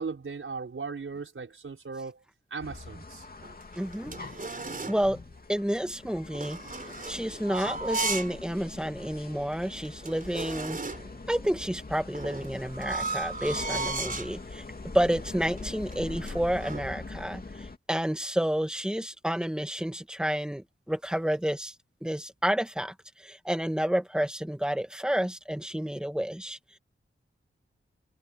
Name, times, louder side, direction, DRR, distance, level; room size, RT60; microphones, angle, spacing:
voice 1, 0.0-2.2 2.5-3.3, right 4 dB, 75° right, 5.7 m, -37 dB
sound 1, 2.6-17.8, left 3 dB, 45° left, 2.7 m, -42 dB
sound 2, 3.4-5.1 6.3-8.4 8.8-8.9 9.5-9.6 9.8-11.2 12.1-14.4 15.0-15.3 15.6-16.9, right 3 dB, 40° right, 4.4 m, -35 dB
voice 2, 3.8-4.1 4.4-4.6 4.9-5.2 5.5-6.6 7.1-10.8 11.3-14.6 14.9-21.7 22.0-26.6, equal, 5° right, 1.8 m, -30 dB
wide cardioid pair, 75°, 21 cm